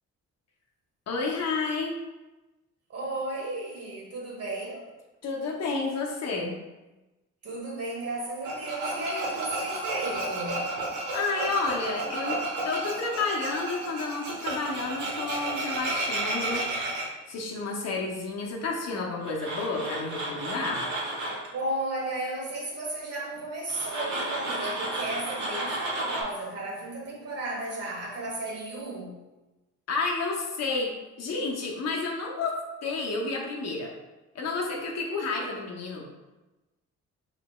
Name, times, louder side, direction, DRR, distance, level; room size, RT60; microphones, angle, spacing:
voice 1, 1.1-1.9 5.2-6.5 11.1-17.0 17.3-20.8 29.9-33.9 34.3-36.0, left 3 dB, 60° left, 0.9 m, -31 dB
voice 2, 2.9-4.9 7.4-10.8 21.5-29.2 35.1-35.4, right 2 dB, 55° right, 1.4 m, -34 dB
Tools, 8.4-17.1 19.2-21.5 23.7-26.2, right 2 dB, 80° right, 1.2 m, -32 dB
4.8 x 3.3 x 2.3 m
cardioid pair, 90°, 30 cm